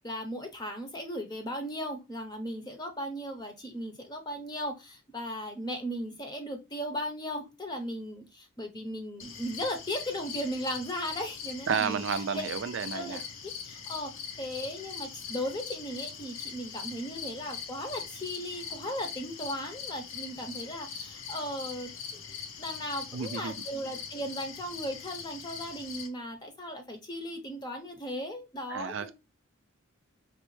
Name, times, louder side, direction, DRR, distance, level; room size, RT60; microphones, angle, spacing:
voice 1, 0.0-12.0 12.3-12.4 12.9-22.2 22.6-29.1, equal, 20° left, 0.7 m, -37 dB
sound 1, 9.2-26.1, left 6 dB, 70° left, 0.8 m, -42 dB
voice 2, 11.7-13.2 23.1-23.5 28.7-29.1, right 6 dB, 60° right, 0.4 m, -31 dB
5.2 x 3.1 x 3.2 m
head